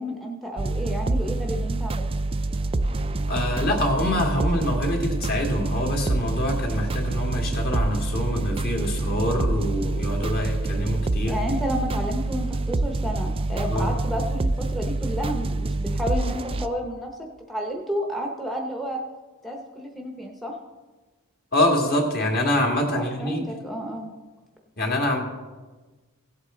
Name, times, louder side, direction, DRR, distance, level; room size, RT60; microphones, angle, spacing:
voice 1, 0.0-2.1 11.3-17.1 17.5-19.0 19.4-20.5 22.9-24.1, equal, ahead, 1 dB, 0.8 m, -31 dB
sound 1, 0.6-16.7, right 2 dB, 25° right, 0.4 m, -26 dB
voice 2, 3.3-11.4 13.6-13.9 21.5-23.4 24.8-25.2, left 1 dB, 45° left, 0 dB, 2.0 m, -25 dB
16.5 x 8.1 x 3.8 m, 1.3 s
head